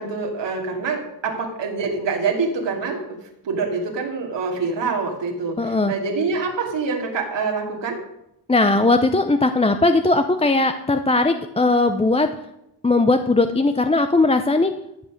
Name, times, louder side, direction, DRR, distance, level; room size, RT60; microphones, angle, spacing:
voice 1, 0.0-3.0 3.4-8.0, right 4 dB, 85° right, 0 dB, 2.7 m, -25 dB
voice 2, 5.6-5.9 8.5-12.3 12.8-14.7, left 2 dB, 15° left, 8 dB, 0.6 m, -18 dB
14.5 x 7.4 x 6.4 m, 0.85 s
cardioid pair, 110°, 42 cm